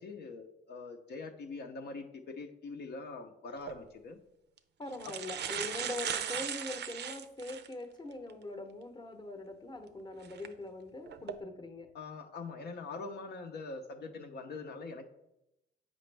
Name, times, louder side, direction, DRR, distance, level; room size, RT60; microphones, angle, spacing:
voice 1, 0.0-4.2 5.0-5.1 11.9-15.1, left 3 dB, 55° left, 3 dB, 0.7 m, -43 dB
sound 1, 3.6-3.8 4.6-4.7 4.9-7.7 8.3-8.4 10.2-10.5 11.1-11.3, right 8 dB, 60° right, 0.5 m, -37 dB
voice 2, 4.8-11.9, left 2 dB, 20° left, 6 dB, 0.8 m, -42 dB
7.6 x 5.2 x 3.3 m, 0.88 s
cardioid pair, 90°, 20 cm